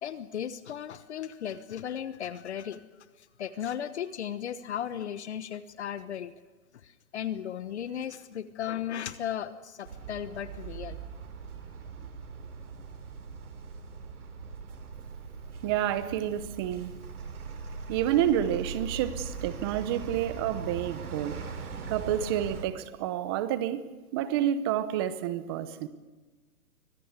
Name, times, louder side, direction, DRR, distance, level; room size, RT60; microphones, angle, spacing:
voice 1, 0.0-2.8 3.4-6.3 6.8-11.0, left 9 dB, 50° left, 14 dB, 1.1 m, -36 dB
sound 1, 9.8-22.6, right 5 dB, 80° right, 3.7 m, -40 dB
voice 2, 15.6-17.0 17.9-21.4 21.9-23.8 24.1-25.9, right 11 dB, 15° right, 13 dB, 0.8 m, -29 dB
24.5 x 17.0 x 8.2 m, 1.2 s
hypercardioid pair, 160°, 44 cm